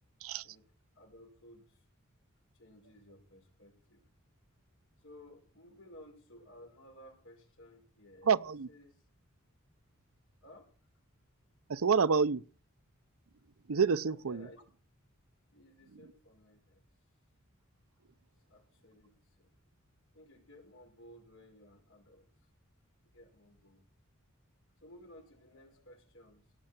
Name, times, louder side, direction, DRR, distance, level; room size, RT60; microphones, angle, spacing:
voice 1, 0.9-1.8 2.5-4.1 5.0-8.3 8.7-9.1 10.4-10.7 13.6-13.7 14.3-14.6 15.5-16.8 18.5-19.5 20.1-22.5 23.1-23.8 24.8-26.5, left 1 dB, 65° left, 5.7 m, -57 dB
voice 2, 8.3-8.7 11.7-12.5 13.7-14.5, right 5 dB, 75° right, 0.6 m, -28 dB
17.5 x 6.6 x 8.9 m
head